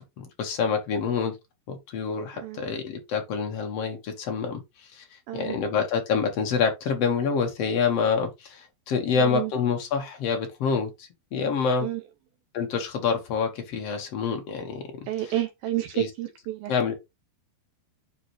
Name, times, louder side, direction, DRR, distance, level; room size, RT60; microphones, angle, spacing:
voice 1, 0.0-1.4 1.7-11.9 12.5-15.3 15.9-16.1 16.7-16.9, left 6 dB, 60° left, 1.6 m, -27 dB
voice 2, 9.2-9.5 11.8-12.0 15.1-16.7, right 13 dB, 90° right, 2.1 m, -30 dB
9.9 x 4.7 x 3.1 m
omnidirectional pair, 5.0 m